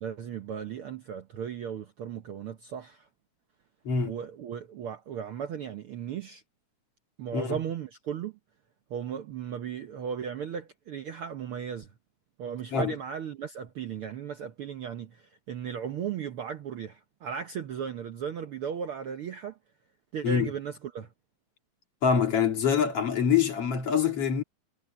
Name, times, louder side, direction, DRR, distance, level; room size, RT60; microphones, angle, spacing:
voice 1, 0.0-3.1 4.0-6.4 7.2-8.3 8.9-11.9 12.4-19.6 20.1-21.1, right 8 dB, 65° right, 1.4 m, -36 dB
voice 2, 22.0-24.4, left 7 dB, 50° left, 3.1 m, -25 dB
omnidirectional pair, 3.5 m